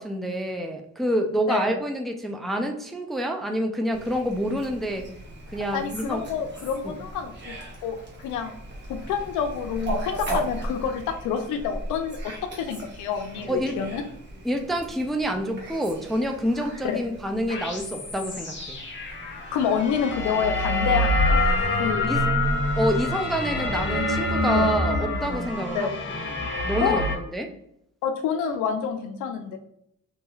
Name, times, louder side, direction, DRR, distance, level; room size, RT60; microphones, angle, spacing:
voice 1, 0.0-5.1 5.5-6.2 6.8-7.0 10.3-10.4 13.5-13.8 14.4-18.8 22.1-22.2 22.8-27.5, equal, ahead, 4 dB, 0.4 m, -28 dB
voice 2, 1.5-1.8 5.7-7.6 7.8-8.5 8.9-14.0 16.8-17.0 19.5-21.4 21.7-22.1 24.5-24.7 25.7-25.9 26.8-27.0 28.0-29.6, left 7 dB, 85° left, 6 dB, 0.5 m, -28 dB
Fowl, 3.9-21.9, right 1 dB, 35° right, 1.3 m, -38 dB
sound 1, 17.5-27.2, left 1 dB, 40° left, 1.1 m, -26 dB
3.2 x 3.0 x 2.3 m, 0.75 s
cardioid pair, 90°, 30 cm